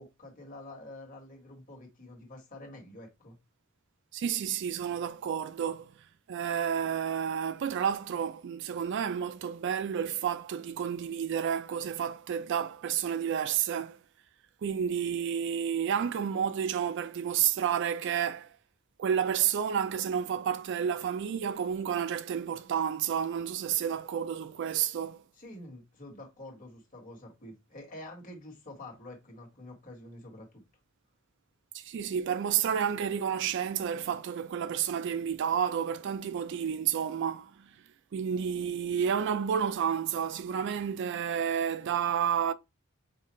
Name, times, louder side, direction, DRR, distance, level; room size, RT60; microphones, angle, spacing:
voice 1, 0.0-3.4 25.3-30.6, left 1 dB, 40° left, 1.6 m, -47 dB
voice 2, 4.1-5.9 6.3-14.0 14.6-18.5 19.0-25.2 31.7-37.7 38.1-42.5, right 8 dB, 55° right, 0.3 m, -30 dB
5.6 x 2.4 x 3.1 m
head